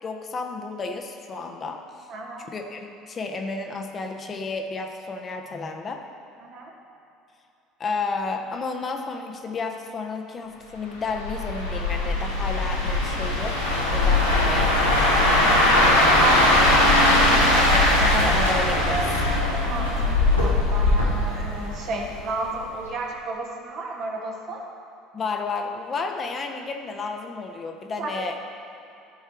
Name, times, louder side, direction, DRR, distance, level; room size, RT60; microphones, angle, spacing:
voice 1, 0.0-2.1 2.5-6.0 7.8-13.6 13.9-15.2 17.5-19.3 25.1-28.4, left 4 dB, 35° left, 3 dB, 0.8 m, -32 dB
voice 2, 2.1-2.5 6.4-6.7 15.9-17.5 19.6-24.6 28.0-28.1, right 3 dB, 50° right, 0 dB, 1.4 m, -32 dB
sound 1, 11.1-22.2 22.5-22.8, left 1 dB, 90° left, 1.3 m, -20 dB
13.5 x 4.6 x 4.5 m, 2.7 s
figure-of-eight pair, 65°, 0 cm